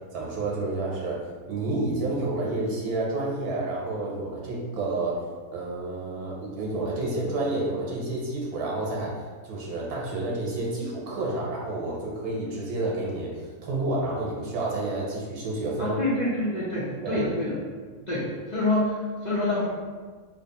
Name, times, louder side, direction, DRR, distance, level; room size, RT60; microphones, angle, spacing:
voice 1, 0.1-5.2 5.5-9.1 9.4-16.0 17.0-17.2, right 2 dB, 80° right, -3 dB, 1.3 m, -30 dB
voice 2, 15.8-17.6 18.1-19.6, left 1 dB, 35° left, -10 dB, 0.8 m, -27 dB
3.2 x 2.2 x 4.1 m, 1.5 s
omnidirectional pair, 1.6 m